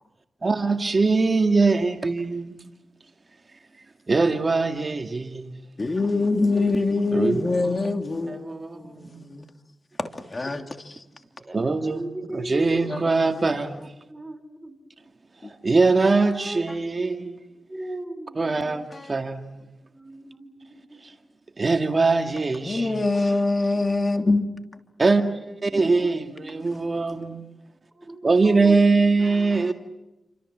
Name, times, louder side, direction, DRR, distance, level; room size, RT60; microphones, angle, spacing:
voice 1, 0.4-2.7 3.7-5.6 7.1-7.4 8.3-9.2 11.5-12.1 12.3-13.9 15.4-17.4 18.4-19.7 21.0-21.1 21.6-23.0 25.0-27.4 28.2-29.7, right 3 dB, 40° right, 1.9 m, -22 dB
voice 2, 5.8-9.5 10.0-11.0 12.8-13.2 15.4-15.5 18.9-19.1 22.6-24.8 26.6-27.0 29.2-29.7, left 3 dB, 35° left, 2.8 m, -25 dB
voice 3, 11.4-12.8 13.4-13.5 13.8-14.8 16.0-18.8 19.9-21.0 25.6-26.6 27.9-29.2, right 1 dB, 15° right, 5.4 m, -38 dB
29.0 x 26.0 x 7.4 m
cardioid pair, 65°, 0 cm